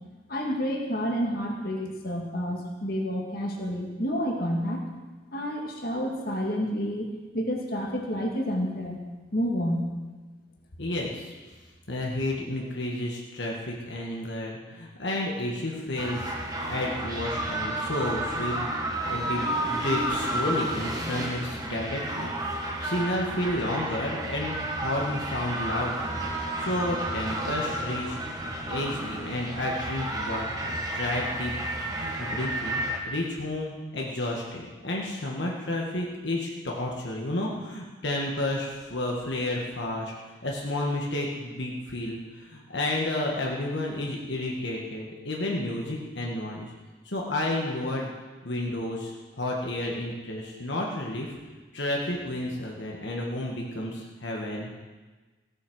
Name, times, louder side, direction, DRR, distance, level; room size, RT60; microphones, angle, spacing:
voice 1, 0.3-4.8 5.3-9.0 9.3-9.9, equal, 50° left, 0 dB, 2.0 m, -29 dB
voice 2, 10.8-11.3 11.9-16.3 16.6-28.2 28.7-31.5 31.9-40.1 40.4-46.7 47.1-48.1 48.4-51.3 51.7-54.7, left 1 dB, 70° left, -2 dB, 1.7 m, -31 dB
sound 1, 16.0-33.0, right 1 dB, 20° right, 1.6 m, -31 dB
16.0 x 8.4 x 6.4 m, 1.3 s
head